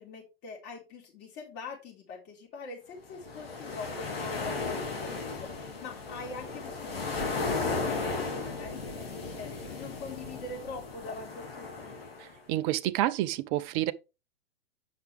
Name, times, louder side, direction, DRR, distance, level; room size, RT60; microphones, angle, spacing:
voice 1, 0.0-12.0, left 4 dB, 35° left, 4.2 m, -44 dB
sound 1, 3.1-12.4, left 3 dB, 80° left, 3.5 m, -35 dB
voice 2, 12.2-13.9, right 14 dB, 30° right, 0.5 m, -29 dB
8.0 x 5.8 x 3.4 m
hypercardioid pair, 120°, 29 cm